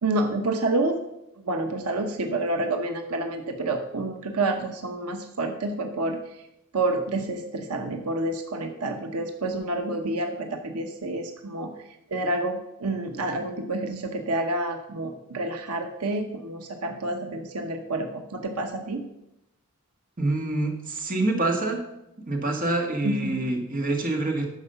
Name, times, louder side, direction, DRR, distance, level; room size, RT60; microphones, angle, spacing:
voice 1, 0.0-1.0 1.4-6.2 6.7-11.7 12.1-19.0 23.0-23.4, right 2 dB, 85° right, 5 dB, 1.0 m, -28 dB
voice 2, 20.2-21.8 22.3-24.5, right 2 dB, 40° right, 2 dB, 1.8 m, -26 dB
12.5 x 4.8 x 6.9 m, 0.87 s
head